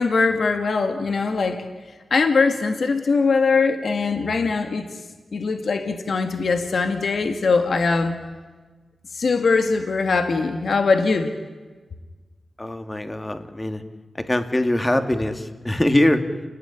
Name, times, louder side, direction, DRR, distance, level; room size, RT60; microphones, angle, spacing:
voice 1, 0.0-1.6 2.1-4.9 5.3-8.2 9.1-11.3, left 4 dB, 65° left, 6 dB, 2.0 m, -21 dB
voice 2, 12.6-13.8 14.3-16.2, left 1 dB, 20° left, 7 dB, 2.4 m, -22 dB
29.0 x 19.0 x 10.0 m, 1.3 s
cardioid pair, 70°, 0 cm